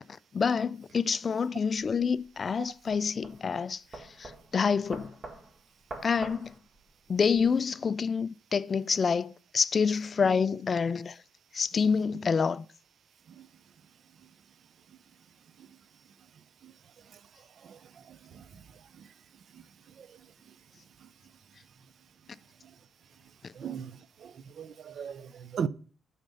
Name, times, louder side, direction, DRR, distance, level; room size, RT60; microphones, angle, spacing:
voice 1, 0.3-5.1 6.0-6.5 7.1-11.2 11.5-12.6 23.4-23.5, left 5 dB, 40° left, 0.3 m, -27 dB
sound 1, 1.8-7.4, right 2 dB, 30° right, 1.7 m, -46 dB
voice 2, 23.6-23.9 24.2-25.7, right 7 dB, 60° right, 0.5 m, -36 dB
9.0 x 4.2 x 5.3 m
cardioid pair, 90°, 0 cm